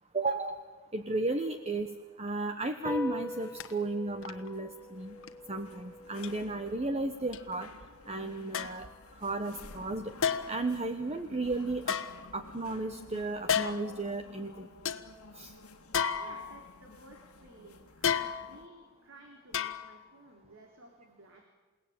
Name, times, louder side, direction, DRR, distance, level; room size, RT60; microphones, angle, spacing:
voice 1, 0.1-0.6 0.9-5.2 5.5-7.7 8.1-8.9 9.1-10.1 10.5-12.0 12.3-14.7 15.3-15.5, right 2 dB, 30° right, 8 dB, 1.1 m, -34 dB
sound 1, 2.8-9.6, left 2 dB, 10° left, 1.3 m, -45 dB
sound 2, 3.0-18.7, left 2 dB, 85° left, 1.8 m, -53 dB
sound 3, 3.6-3.7 4.2-4.5 5.2-5.3 6.2-6.3 7.3-7.4 8.5-8.9 10.2-10.7 11.8-12.7 13.5-14.0 14.4-14.5 14.8-15.0 15.9-16.8 18.0-18.7 19.5-20.1 20.4-20.5, left 7 dB, 60° left, 1.3 m, -32 dB
voice 2, 16.2-21.5, right 2 dB, 60° right, 2 dB, 3.8 m, -55 dB
28.5 x 18.0 x 8.7 m, 1.3 s
head